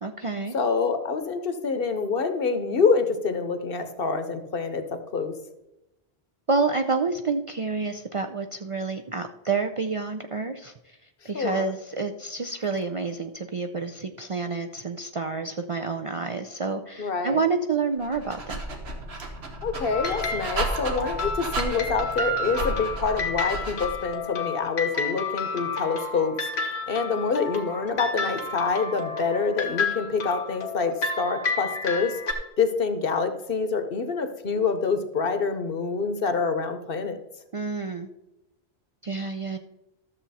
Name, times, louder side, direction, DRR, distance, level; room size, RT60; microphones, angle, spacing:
voice 1, 0.0-0.5 6.5-10.7 11.2-18.6 37.5-38.1 39.0-39.6, right 4 dB, 45° right, 5 dB, 0.4 m, -28 dB
voice 2, 0.5-5.3 11.3-11.7 17.0-17.4 19.6-37.2, left 5 dB, 60° left, 9 dB, 1.1 m, -26 dB
Dog, 18.0-24.1, right 2 dB, 80° right, 1.6 m, -33 dB
sound 1, 19.9-32.3, left 3 dB, 90° left, 1.5 m, -31 dB
13.0 x 7.1 x 4.1 m, 0.91 s
omnidirectional pair, 1.1 m